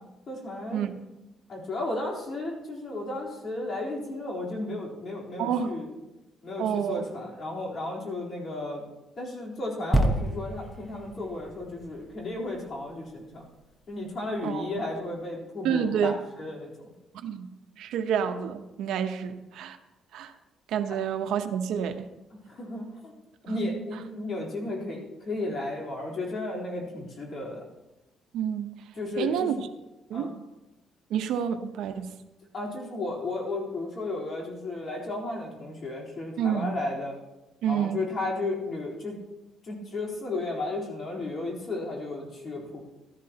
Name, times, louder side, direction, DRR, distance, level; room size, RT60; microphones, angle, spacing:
voice 1, 0.3-0.8 1.5-5.9 6.4-8.8 9.2-13.4 13.9-16.7 20.9-21.0 22.3-23.1 23.4-27.7 28.9-29.5 30.1-30.3 32.5-37.1 37.7-39.2 39.6-42.8, left 2 dB, 45° left, -2 dB, 3.7 m, -34 dB
voice 2, 5.4-5.7 6.6-7.1 14.4-14.7 15.6-16.2 17.1-17.5 17.8-19.8 20.1-20.3 20.7-22.1 23.5-23.6 28.3-28.7 29.2-29.5 30.1-30.3 31.1-32.1 36.4-36.7 37.6-38.0, right 8 dB, 85° right, 8 dB, 0.9 m, -28 dB
sound 1, 9.9-13.5 14.1-14.2, right 1 dB, 5° left, 1.1 m, -29 dB
15.5 x 12.5 x 2.9 m, 1.0 s
cardioid pair, 130°, 0 cm